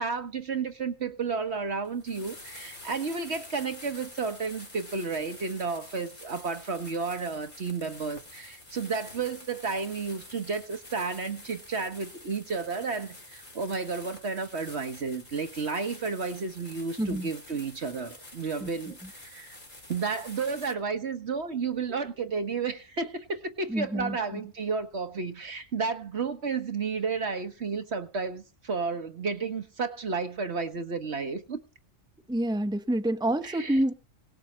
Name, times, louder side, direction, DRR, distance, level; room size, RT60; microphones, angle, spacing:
voice 1, 0.0-19.6 19.9-31.6 33.4-33.8, right 4 dB, 55° right, 1.5 m, -32 dB
sound 1, 1.8-20.7, left 1 dB, 35° left, 4.0 m, -48 dB
voice 2, 17.0-17.3 18.6-18.7 23.7-24.4 32.3-33.9, right 1 dB, 5° right, 1.1 m, -28 dB
18.5 x 7.7 x 7.3 m
omnidirectional pair, 1.4 m